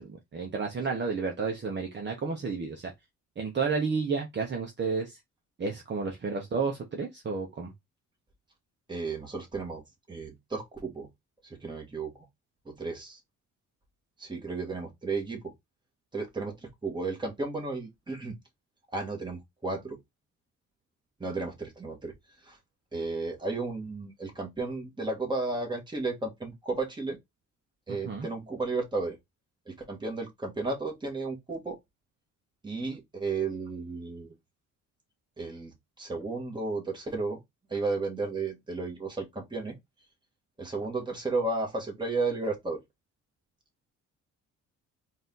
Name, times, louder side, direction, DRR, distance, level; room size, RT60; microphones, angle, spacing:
voice 1, 0.0-2.9 3.4-5.2 5.6-7.7 27.9-28.3, right 4 dB, 35° right, 1.0 m, -31 dB
voice 2, 8.9-9.8 10.1-11.1 11.4-12.1 12.6-13.2 14.2-15.5 16.1-18.4 18.9-20.0 21.2-22.1 22.4-22.6 22.9-27.2 27.9-29.2 29.6-31.8 32.6-34.3 35.4-37.4 37.7-39.8 40.6-42.8, right 3 dB, 15° right, 1.7 m, -33 dB
3.9 x 2.7 x 3.8 m
cardioid pair, 90°, 30 cm